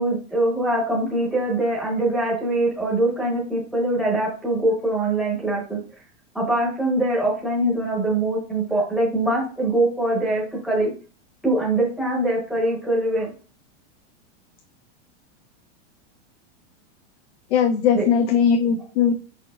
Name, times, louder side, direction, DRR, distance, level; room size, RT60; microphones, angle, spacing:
voice 1, 0.0-5.8 6.3-10.9 11.4-13.3 17.9-18.0, right 1 dB, ahead, -5 dB, 0.7 m, -23 dB
voice 2, 17.5-19.1, left 7 dB, 70° left, 4 dB, 0.6 m, -19 dB
4.8 x 4.4 x 2.3 m, 0.38 s
supercardioid pair, 180°, 35 cm